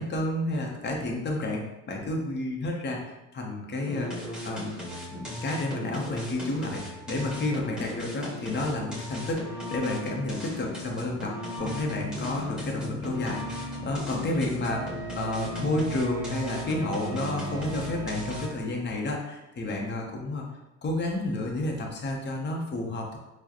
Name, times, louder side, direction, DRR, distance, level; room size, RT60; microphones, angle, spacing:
voice 1, 0.0-4.7 5.1-20.4 20.8-23.2, left 2 dB, 35° left, 0 dB, 0.8 m, -31 dB
sound 1, 3.9-18.7, equal, 5° right, 1.5 m, -38 dB
sound 2, 11.6-18.4, left 1 dB, 70° left, 0.9 m, -38 dB
Wind instrument woodwind instrument, 14.6-18.6, right 3 dB, 50° right, 0.5 m, -43 dB
4.5 x 2.1 x 2.9 m, 0.95 s
cardioid pair, 90°, 30 cm